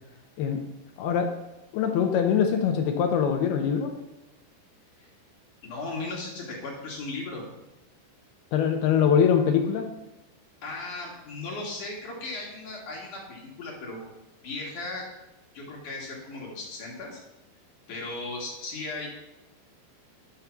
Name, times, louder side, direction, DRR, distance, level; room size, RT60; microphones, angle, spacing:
voice 1, 1.0-1.4 1.7-4.0 8.5-9.9, left 7 dB, 80° left, 5 dB, 2.3 m, -23 dB
voice 2, 5.6-7.4 10.6-14.1 14.4-15.1 15.5-17.2 17.9-19.1, left 2 dB, 55° left, -2 dB, 2.8 m, -36 dB
11.5 x 8.0 x 5.9 m, 0.99 s
omnidirectional pair, 5.4 m